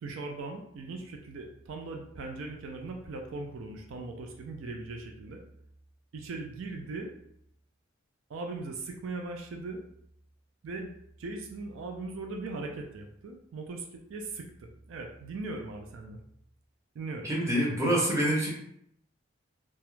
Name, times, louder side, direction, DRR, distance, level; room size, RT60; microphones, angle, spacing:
voice 1, 0.0-5.4 6.1-7.1 8.3-9.8 10.6-10.9 11.2-16.2 16.9-17.3, right 3 dB, 75° right, 2 dB, 0.4 m, -39 dB
voice 2, 17.2-18.5, right 1 dB, 15° right, -4 dB, 0.6 m, -26 dB
2.3 x 2.0 x 3.0 m, 0.72 s
head